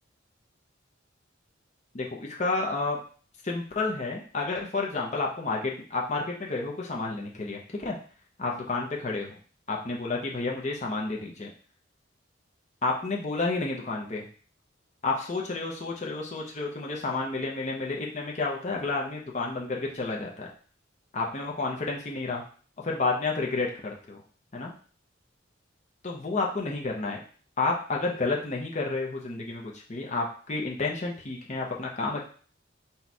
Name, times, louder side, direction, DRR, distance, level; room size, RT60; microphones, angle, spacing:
voice 1, 1.9-3.0 3.4-8.0 8.4-9.4 9.7-11.5 12.8-14.3 15.0-20.5 21.1-22.4 22.8-24.2 24.5-24.7 26.0-27.2 27.6-32.3, left 3 dB, 35° left, -1 dB, 0.7 m, -30 dB
4.1 x 2.3 x 4.5 m, 0.42 s
head